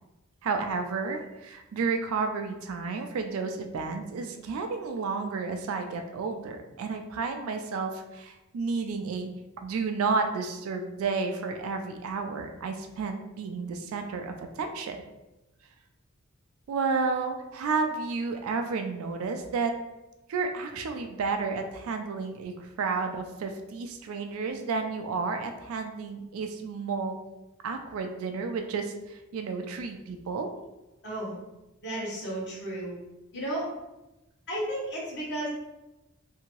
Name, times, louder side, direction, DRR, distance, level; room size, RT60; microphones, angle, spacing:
voice 1, 0.4-9.3 9.6-15.0 16.7-19.7 20.3-27.2 27.6-30.5, right 4 dB, 70° right, 5 dB, 0.3 m, -31 dB
voice 2, 31.0-31.4 31.8-32.9 33.3-33.7 34.5-35.5, right 1 dB, 50° left, -6 dB, 1.1 m, -33 dB
2.8 x 2.6 x 2.9 m, 0.98 s
head